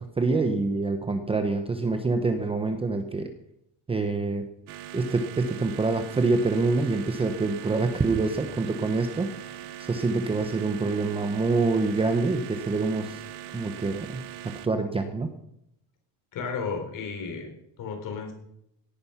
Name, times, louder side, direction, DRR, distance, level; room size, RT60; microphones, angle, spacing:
voice 1, 0.0-3.3 3.9-4.5 4.9-9.4 9.8-13.2 13.5-15.3, right 3 dB, 15° right, 7 dB, 0.8 m, -26 dB
sound 1, 4.7-14.7, right 13 dB, 70° right, 1.1 m, -41 dB
voice 2, 16.3-17.5 17.8-18.3, left 5 dB, 50° left, 4 dB, 4.0 m, -33 dB
17.0 x 10.5 x 5.7 m, 0.77 s
cardioid pair, 175°, 42 cm